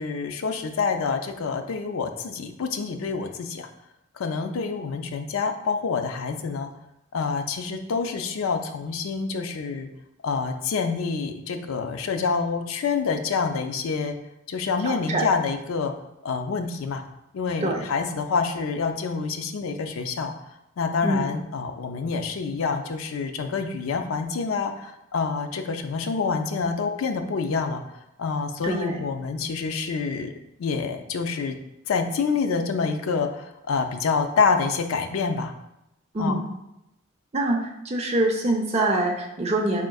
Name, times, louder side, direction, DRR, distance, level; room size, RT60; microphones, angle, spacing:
voice 1, 0.0-3.7 4.2-6.7 7.1-9.9 10.2-14.2 14.5-15.9 16.2-17.0 17.3-20.3 20.8-27.8 28.2-30.3 30.6-31.6 31.9-35.5 36.2-36.4, left 5 dB, 80° left, 6 dB, 0.4 m, -27 dB
voice 2, 14.8-15.2 17.6-17.8 21.0-21.3 28.6-29.0 36.1-36.4 37.3-39.9, right 2 dB, 30° right, 1 dB, 0.5 m, -25 dB
4.2 x 3.7 x 2.3 m, 0.88 s
head